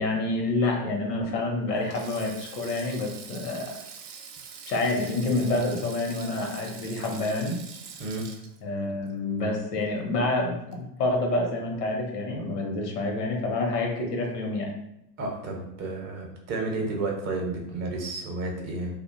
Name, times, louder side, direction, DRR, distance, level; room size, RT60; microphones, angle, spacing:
voice 1, 0.0-3.7 4.7-7.6 8.6-14.7, left 2 dB, 85° left, 1 dB, 0.7 m, -28 dB
Sink (filling or washing), 1.8-10.2 10.5-10.7 11.9-12.2, right 6 dB, 75° right, 0.5 m, -45 dB
voice 2, 8.0-8.3 15.2-19.0, right 2 dB, 35° right, 1 dB, 0.6 m, -31 dB
2.5 x 2.1 x 2.4 m, 0.80 s
hypercardioid pair, 85°, 47 cm